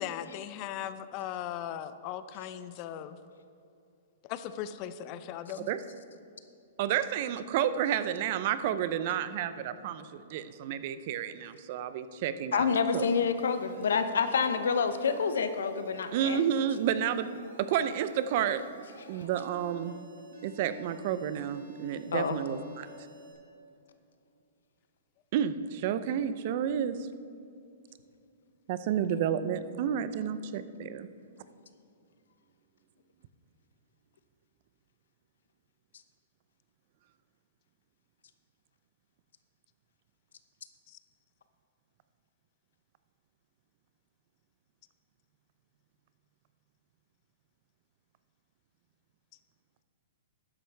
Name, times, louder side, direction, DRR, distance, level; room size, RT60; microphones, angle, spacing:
voice 1, 0.0-3.2 4.2-5.7 40.9-41.0, left 10 dB, 40° left, 12 dB, 0.6 m, -38 dB
voice 2, 6.8-12.7 12.9-13.0 16.1-18.6 19.1-20.0 20.4-22.9 25.3-27.0 28.7-31.1, right 9 dB, 50° right, 13 dB, 0.6 m, -30 dB
voice 3, 12.5-16.4 22.1-22.4, left 5 dB, 80° left, 10 dB, 0.8 m, -28 dB
Alarm, 13.3-23.3, right 1 dB, 85° right, 2.3 m, -52 dB
12.5 x 9.9 x 3.4 m, 2.5 s
hypercardioid pair, 130°, 0 cm